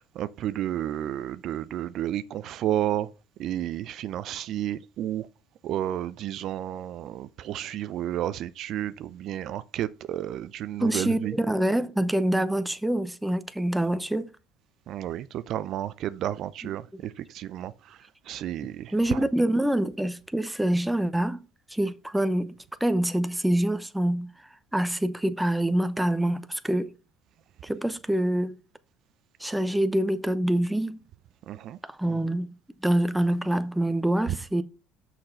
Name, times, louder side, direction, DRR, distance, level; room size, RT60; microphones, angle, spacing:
voice 1, 0.0-3.1 3.4-5.3 5.6-11.4 14.9-19.2 31.5-31.8 32.0-32.2, right 12 dB, 60° right, 0.5 m, -32 dB
voice 2, 10.8-14.3 18.9-21.4 21.7-24.3 24.7-26.9 27.6-28.6 29.4-31.0 31.9-32.5 32.8-34.6, right 1 dB, 5° right, 0.8 m, -26 dB
6.5 x 5.9 x 5.6 m
supercardioid pair, 80°, 0 cm